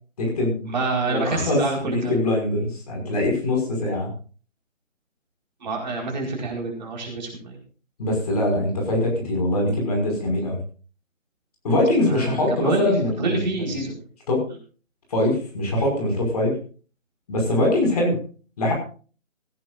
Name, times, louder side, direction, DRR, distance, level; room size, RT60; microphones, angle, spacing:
voice 1, 0.2-0.7 1.1-4.1 8.0-10.6 11.6-13.7 14.3-14.5 15.1-16.6 17.3-18.2 18.6-18.7, left 1 dB, 30° left, 1 dB, 5.7 m, -23 dB
voice 2, 0.7-2.1 5.6-7.6 12.1-12.9 13.2-14.0, right 3 dB, 35° right, 0 dB, 4.8 m, -27 dB
17.5 x 16.0 x 2.5 m, 0.38 s
figure-of-eight pair, 165°, 39 cm